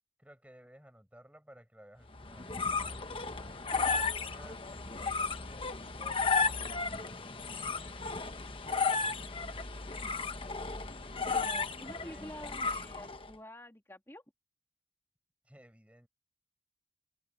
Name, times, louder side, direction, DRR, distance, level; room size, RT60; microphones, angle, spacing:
voice 1, 0.2-2.5 3.1-3.6 3.8-5.6 6.0-6.6 6.9-7.8 11.8-12.3 15.5-16.1, equal, 10° right, 6.9 m, -57 dB
sound 1, 2.1-13.3, left 4 dB, 30° left, 1.2 m, -34 dB
voice 2, 11.3-14.2, left 1 dB, 15° left, 2.8 m, -48 dB
open air
head